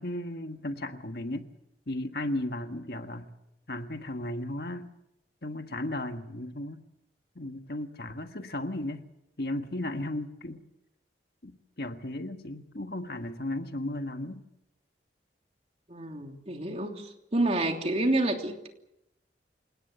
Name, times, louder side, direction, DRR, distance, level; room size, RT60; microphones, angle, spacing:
voice 1, 0.0-1.5 1.9-3.3 3.7-4.9 5.4-6.8 7.3-9.1 9.4-10.6 11.4-14.4, left 1 dB, 60° left, 1.5 m, -35 dB
voice 2, 15.9-18.7, right 2 dB, 35° right, 3.0 m, -29 dB
28.5 x 18.5 x 6.8 m
head